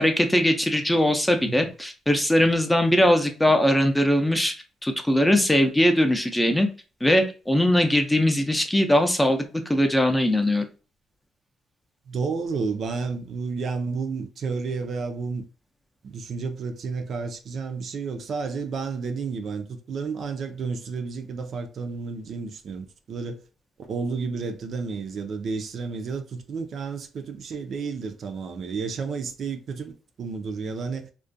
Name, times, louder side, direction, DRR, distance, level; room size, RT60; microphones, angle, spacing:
voice 1, 0.0-4.5 4.8-6.7 7.0-9.4 9.7-10.6, left 1 dB, 10° left, 0.4 m, -20 dB
voice 2, 12.1-15.4 16.0-23.4 23.8-31.1, right 4 dB, 60° right, 0.4 m, -31 dB
2.4 x 2.1 x 2.5 m
cardioid pair, 90°, 0 cm